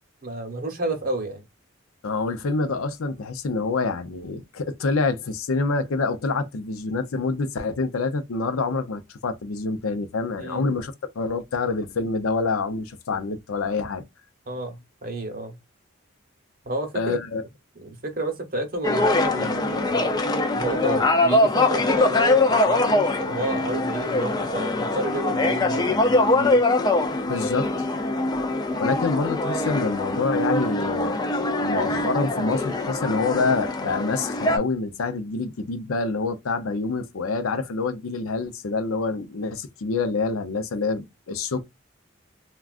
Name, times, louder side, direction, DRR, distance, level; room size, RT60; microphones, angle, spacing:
voice 1, 0.2-1.4 10.4-10.6 14.5-15.6 16.6-17.2 17.8-20.1 20.5-26.6, right 2 dB, 45° right, 0.8 m, -31 dB
voice 2, 2.0-14.0 16.9-17.4 27.3-27.7 28.8-31.2 31.6-41.6, left 4 dB, 90° left, 0.6 m, -26 dB
sound 1, 18.8-34.6, left 2 dB, 20° left, 0.4 m, -23 dB
3.5 x 2.3 x 2.4 m
head